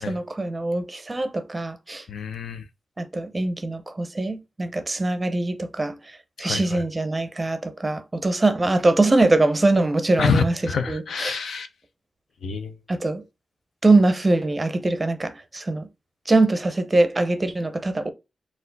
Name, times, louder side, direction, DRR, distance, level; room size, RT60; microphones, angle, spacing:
voice 1, 0.1-2.0 3.0-10.5 10.9-11.4 12.9-13.2 13.8-15.9 16.3-18.1, right 2 dB, 20° right, 0.5 m, -22 dB
voice 2, 2.1-2.6 6.4-6.8 10.2-11.7 12.4-12.7, left 5 dB, 85° left, 0.6 m, -26 dB
4.4 x 2.4 x 3.8 m
wide cardioid pair, 155°, 0 cm